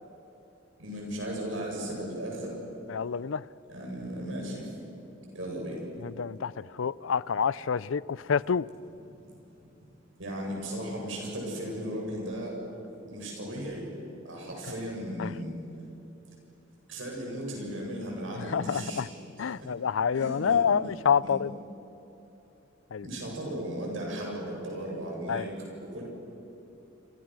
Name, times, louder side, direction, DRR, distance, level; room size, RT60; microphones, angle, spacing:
voice 1, 0.8-2.6 3.7-4.7 5.3-5.8 10.2-12.6 13.1-13.9 14.2-15.6 16.9-19.1 19.6-19.7 20.1-20.7 21.2-21.3 23.0-25.5 25.9-26.0, right 1 dB, 80° right, 7.9 m, -36 dB
voice 2, 2.9-3.4 6.0-8.7 15.2-15.3 18.4-19.1 19.4-21.5 22.9-23.1 25.3-25.5, left 6 dB, 85° left, 0.5 m, -28 dB
28.0 x 27.0 x 6.3 m
head